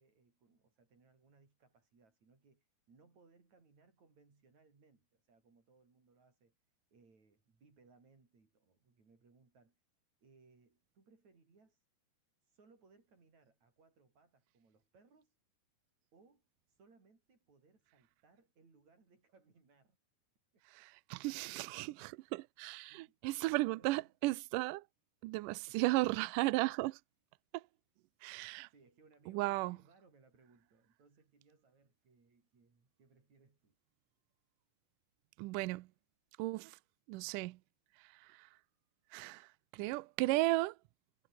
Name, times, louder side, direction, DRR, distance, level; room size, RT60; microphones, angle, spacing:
voice 1, 0.0-6.6 6.9-9.8 10.2-11.8 12.4-15.4 16.1-20.0 21.1-22.2 22.9-24.1 25.7-25.9 28.7-33.8, right 4 dB, 50° right, 7.0 m, -67 dB
voice 2, 20.7-24.8 25.2-27.0 27.5-27.6 28.2-28.7 29.3-29.8 35.4-35.9 36.4-36.8 37.1-37.6 38.0-38.5 39.1-40.8, right 20 dB, 80° right, 1.9 m, -35 dB
omnidirectional pair, 4.3 m